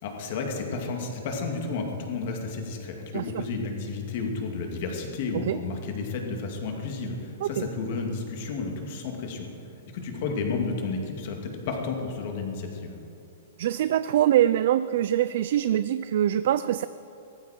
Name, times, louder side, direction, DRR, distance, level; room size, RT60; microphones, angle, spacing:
voice 1, 0.0-9.5 9.9-13.0, left 4 dB, 45° left, 2 dB, 2.4 m, -32 dB
voice 2, 13.6-16.9, right 11 dB, 55° right, 14 dB, 0.4 m, -24 dB
17.5 x 14.5 x 4.5 m, 2.9 s
hypercardioid pair, 165°, 0 cm